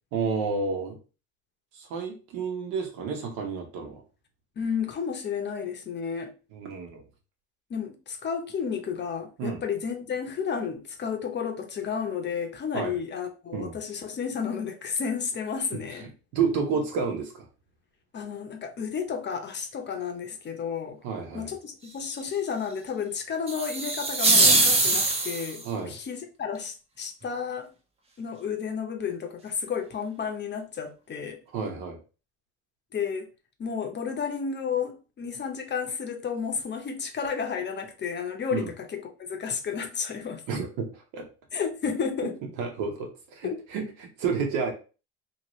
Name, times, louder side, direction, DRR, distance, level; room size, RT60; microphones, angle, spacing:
voice 1, 0.1-1.0 1.7-4.0 6.5-7.0 9.4-9.6 12.7-12.9 13.5-13.8 15.9-17.5 21.0-21.5 25.6-25.9 31.5-32.0 38.5-38.7 40.5-41.2 42.2-42.3 42.6-44.7, right 5 dB, 70° right, 1.3 m, -30 dB
voice 2, 4.6-6.3 7.7-16.1 18.1-21.0 21.3-27.7 28.2-31.4 32.9-33.3 33.6-40.4 41.5-42.4 43.4-43.6, left 6 dB, 30° left, 0.8 m, -32 dB
sound 1, 23.5-25.7, right 2 dB, 20° right, 0.8 m, -22 dB
2.9 x 2.8 x 3.1 m
supercardioid pair, 95°, 34 cm